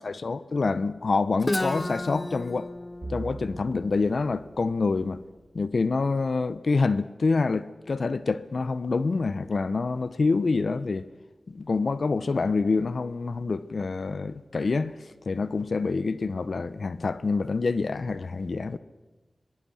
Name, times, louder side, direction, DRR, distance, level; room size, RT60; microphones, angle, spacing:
voice 1, 0.0-2.7 3.1-5.2 5.5-11.0 11.5-15.0 15.3-18.8, left 4 dB, 70° left, 0.8 m, -26 dB
Guitar, 1.4-5.2, left 2 dB, 30° left, 1.0 m, -33 dB
sound 1, 3.0-5.5, right 2 dB, 40° right, 3.7 m, -42 dB
25.0 x 20.0 x 6.3 m
cardioid pair, 40°, 0 cm